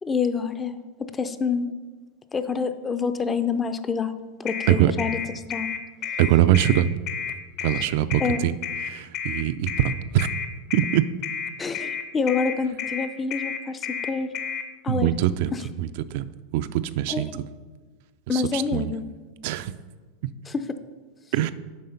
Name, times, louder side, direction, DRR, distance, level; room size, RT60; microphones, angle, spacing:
voice 1, 0.0-1.7 2.3-4.1 4.4-5.2 5.5-5.7 8.2-8.4 11.6-14.3 14.8-15.1 15.5-15.6 17.1-17.4 18.3-19.1 20.5-20.6, left 5 dB, 20° left, 11 dB, 0.5 m, -27 dB
sound 1, 4.5-14.6, left 7 dB, 45° left, 0.8 m, -31 dB
voice 2, 6.2-6.9 7.6-8.6 8.8-10.3 10.7-11.0 14.9-17.3 18.3-18.9 19.4-19.7 21.3-21.5, right 12 dB, 60° right, 12 dB, 0.3 m, -23 dB
7.5 x 5.0 x 5.6 m, 1.4 s
supercardioid pair, 135°, 0 cm